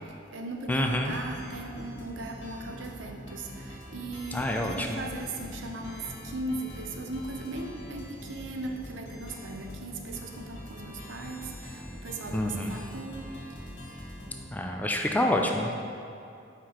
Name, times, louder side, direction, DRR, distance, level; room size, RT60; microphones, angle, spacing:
voice 1, 0.0-13.6, right 2 dB, 80° right, 3 dB, 0.6 m, -38 dB
sound 1, 0.7-14.4, left 1 dB, 85° left, 1.4 m, -43 dB
voice 2, 0.7-1.1 4.3-4.9 12.3-12.8 14.5-15.7, left 1 dB, 10° left, 2 dB, 0.3 m, -27 dB
5.8 x 4.7 x 4.3 m, 2.6 s
head